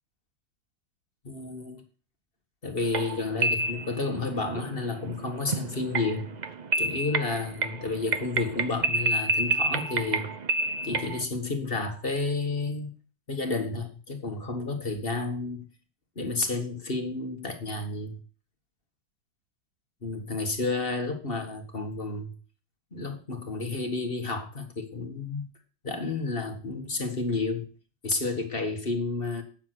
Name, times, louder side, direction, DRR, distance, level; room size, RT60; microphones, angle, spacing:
voice 1, 1.2-1.8 2.6-6.3 6.8-10.3 10.8-12.9 13.3-15.7 16.2-18.2 20.0-22.3 22.9-25.5 25.8-27.7 28.0-29.4, left 3 dB, 30° left, 5 dB, 2.0 m, -31 dB
sound 1, 2.8-11.2, right 3 dB, 90° right, 0.4 m, -29 dB
9.1 x 7.4 x 6.1 m, 0.39 s
omnidirectional pair, 2.0 m